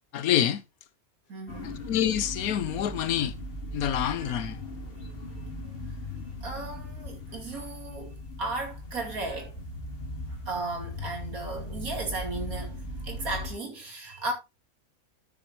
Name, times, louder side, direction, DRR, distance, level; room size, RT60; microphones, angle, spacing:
voice 1, 0.1-0.6 1.6-3.4 3.7-4.6, left 10 dB, 85° left, 1.3 m, -27 dB
voice 2, 1.3-1.9 6.4-9.5 10.5-14.3, right 2 dB, 75° right, 3.0 m, -35 dB
sound 1, 1.5-13.5, left 1 dB, 40° left, 2.3 m, -38 dB
12.0 x 6.9 x 3.0 m
omnidirectional pair, 1.5 m